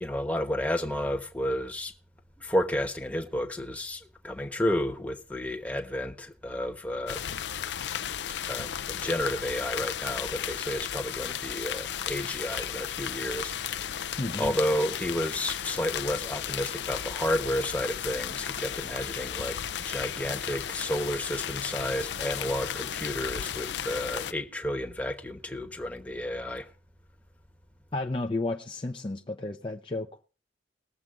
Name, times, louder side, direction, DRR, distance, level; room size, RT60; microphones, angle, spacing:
voice 1, 0.0-1.9 2.4-7.2 8.5-13.5 14.4-26.7, left 1 dB, 10° left, 1.1 m, -31 dB
sound 1, 7.1-24.3, left 9 dB, 75° left, 0.5 m, -34 dB
voice 2, 14.2-14.6 27.9-30.2, left 2 dB, 30° left, 0.6 m, -32 dB
20.5 x 7.4 x 3.7 m
head